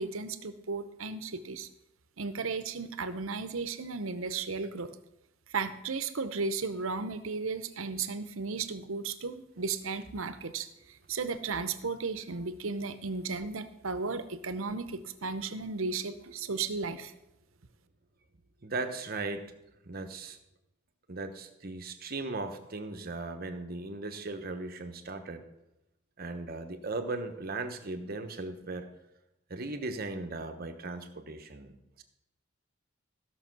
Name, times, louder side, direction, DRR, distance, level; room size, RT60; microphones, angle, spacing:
voice 1, 0.0-1.7 2.2-4.9 5.5-10.7 11.1-17.1, right 4 dB, 80° right, 12 dB, 0.9 m, -35 dB
voice 2, 18.6-19.5 19.9-20.4 21.1-25.4 26.2-28.9 29.5-32.0, right 3 dB, 45° right, 7 dB, 1.1 m, -37 dB
15.0 x 6.1 x 6.1 m, 0.89 s
head